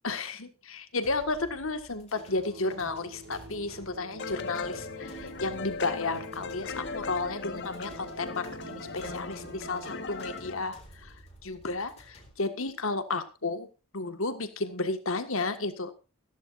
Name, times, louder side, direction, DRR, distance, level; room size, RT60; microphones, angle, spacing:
voice 1, 0.0-13.7 13.9-15.9, left 3 dB, 70° left, 9 dB, 1.7 m, -33 dB
sound 1, 1.0-12.3, equal, 30° left, 3.8 m, -53 dB
sound 2, 2.1-9.9, right 1 dB, 65° right, 1.9 m, -47 dB
sound 3, 4.2-10.6, left 4 dB, 50° left, 1.4 m, -39 dB
16.0 x 15.0 x 2.6 m, 0.31 s
head